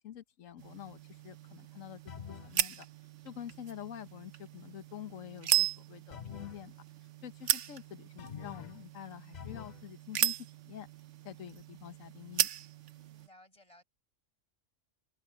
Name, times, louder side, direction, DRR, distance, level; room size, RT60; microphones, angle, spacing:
voice 1, 0.0-2.2 2.4-2.9 3.2-6.7 7.2-10.4 10.6-10.9 11.2-12.5, left 11 dB, 85° left, 1.3 m, -47 dB
sound 1, 0.6-13.3, right 11 dB, 70° right, 1.1 m, -37 dB
sound 2, 2.1-2.6 6.1-6.7 8.2-8.8 9.3-9.9, left 9 dB, 50° left, 0.6 m, -46 dB
voice 2, 12.9-13.8, left 1 dB, 25° left, 5.3 m, -59 dB
open air
omnidirectional pair, 1.3 m